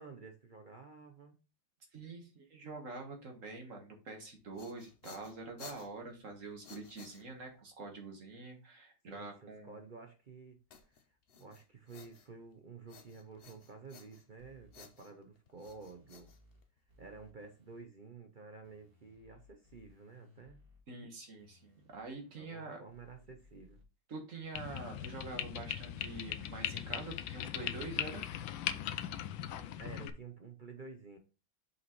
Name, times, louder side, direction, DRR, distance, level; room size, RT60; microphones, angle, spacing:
voice 1, 0.0-1.4 9.1-11.1 11.4-16.3 17.0-20.6 22.3-23.8 29.8-31.2, right 4 dB, 60° right, 4 dB, 0.5 m, -51 dB
voice 2, 1.9-9.8 20.9-22.8 24.1-28.2, right 3 dB, 45° right, 3 dB, 1.7 m, -46 dB
sound 1, 4.3-7.7 10.7-12.5 12.9-14.4 14.7-17.0, left 6 dB, 65° left, 0.6 m, -56 dB
sound 2, 14.4-14.8 15.6-16.6 16.9-17.8 18.6-20.8 21.4-22.5 22.9-23.8 24.4-26.4, left 4 dB, 30° right, 2.8 m, -64 dB
sound 3, 24.5-30.1, left 11 dB, 85° left, 1.4 m, -39 dB
6.1 x 5.4 x 3.1 m, 0.32 s
omnidirectional pair, 2.0 m